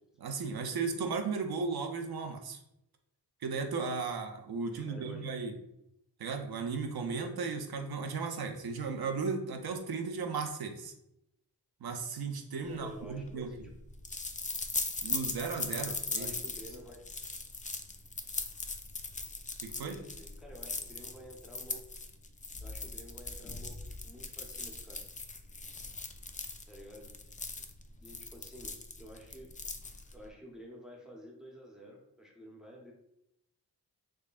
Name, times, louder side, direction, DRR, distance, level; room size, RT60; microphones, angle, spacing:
voice 1, 0.2-2.6 3.4-5.5 6.2-10.9 11.8-13.5 15.0-16.3 19.6-20.0, right 4 dB, 60° right, 4 dB, 0.6 m, -35 dB
voice 2, 4.7-5.3 12.7-13.7 16.1-17.0 19.8-21.8 22.6-23.8 24.0-25.1 26.7-27.1 28.0-29.5 30.1-32.9, equal, ahead, -1 dB, 0.8 m, -50 dB
sound 1, 12.8-30.3, left 3 dB, 20° left, 0.4 m, -40 dB
3.7 x 3.2 x 2.4 m, 0.83 s
cardioid pair, 40°, 42 cm